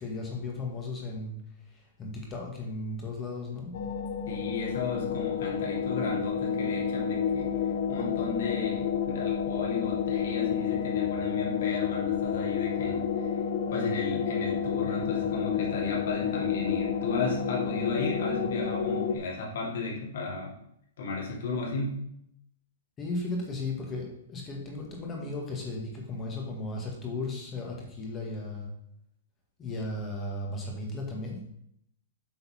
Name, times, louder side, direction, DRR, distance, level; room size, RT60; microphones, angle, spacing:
voice 1, 0.0-1.4 1.7-3.7 23.0-28.7 29.6-31.4, left 2 dB, 15° left, 0 dB, 1.6 m, -35 dB
sound 1, 3.7-19.2, left 7 dB, 45° left, 0.8 m, -30 dB
voice 2, 4.3-7.5 7.9-13.3 13.7-20.6 21.0-22.0, left 3 dB, 60° left, -2 dB, 2.8 m, -34 dB
8.2 x 4.2 x 5.6 m, 0.71 s
hypercardioid pair, 175°, 0 cm